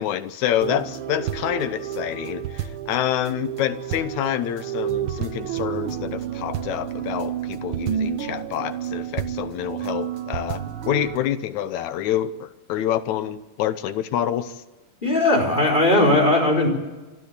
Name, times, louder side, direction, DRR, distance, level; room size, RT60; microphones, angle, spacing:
voice 1, 0.0-14.6, left 11 dB, 75° left, 12 dB, 2.2 m, -27 dB
sound 1, 0.6-11.2, right 10 dB, 65° right, 1.4 m, -30 dB
voice 2, 15.0-16.7, left 2 dB, 15° left, 1 dB, 4.1 m, -18 dB
26.0 x 12.5 x 8.2 m, 1.2 s
omnidirectional pair, 3.5 m